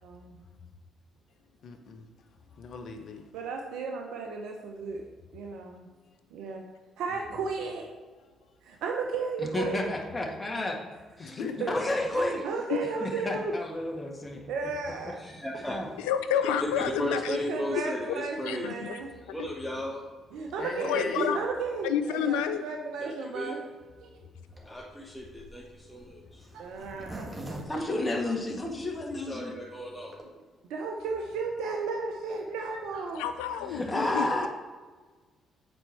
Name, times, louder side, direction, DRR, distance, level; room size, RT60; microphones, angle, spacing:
voice 1, 0.0-0.4 3.3-5.0 5.3-5.9 6.3-6.6 7.0-7.9 8.6-9.9 11.6-11.7 12.1-13.5 14.5-15.2 17.3-19.1 20.3-23.6 24.0-24.1 26.5-27.8 30.7-33.3 33.7-33.8, right 4 dB, 75° right, 2 dB, 0.7 m, -34 dB
voice 2, 1.6-2.0 2.6-3.2 7.1-7.4 11.2-11.9 20.6-21.3 33.8-34.4, left 5 dB, 60° left, 6 dB, 0.9 m, -39 dB
voice 3, 9.5-10.8 11.2-12.4 13.0-14.5 15.7-15.9 27.7-29.6 33.6-34.5, left 2 dB, 25° left, 0 dB, 1.8 m, -31 dB
voice 4, 15.2-16.0 16.6-18.9 19.3-20.0 23.0-23.6 24.6-26.4 29.2-30.1, left 1 dB, 5° left, -3 dB, 1.1 m, -36 dB
voice 5, 16.1-17.2 18.5-19.0 20.9-21.4 21.8-22.6 33.1-33.8 34.1-34.2, left 9 dB, 85° left, 10 dB, 0.5 m, -29 dB
Zipper (clothing), 24.5-28.8 29.3-29.4 29.6-29.7 29.9-30.2, right 1 dB, 25° right, 1.8 m, -43 dB
8.0 x 4.5 x 4.5 m, 1.4 s
hypercardioid pair, 55°, 0 cm